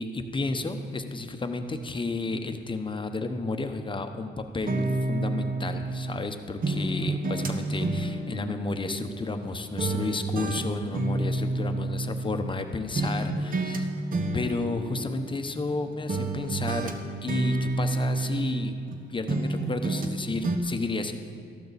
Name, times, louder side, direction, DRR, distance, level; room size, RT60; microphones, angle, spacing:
voice 1, 0.0-13.9 14.3-16.9 17.2-18.7 19.1-21.1, left 3 dB, 25° left, 7 dB, 0.9 m, -32 dB
sound 1, 4.7-6.3 6.6-9.5 9.8-12.6 13.0-13.8 14.1-15.8 16.1-19.0 19.3-20.2 20.4-20.6, right 2 dB, 45° right, 1.2 m, -29 dB
14.0 x 12.0 x 4.2 m, 2.2 s
cardioid pair, 90°, 20 cm